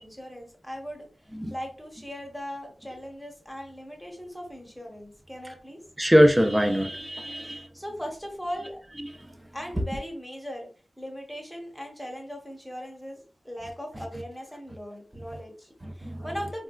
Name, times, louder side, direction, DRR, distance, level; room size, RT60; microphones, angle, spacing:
voice 1, 0.0-5.8 7.4-8.8 9.5-10.7 11.0-16.6, equal, ahead, 0 dB, 0.9 m, -39 dB
voice 2, 6.0-7.7 15.8-16.3, equal, 15° right, 5 dB, 0.4 m, -22 dB
3.9 x 2.3 x 2.3 m, 0.39 s
wide cardioid pair, 90°, 0 cm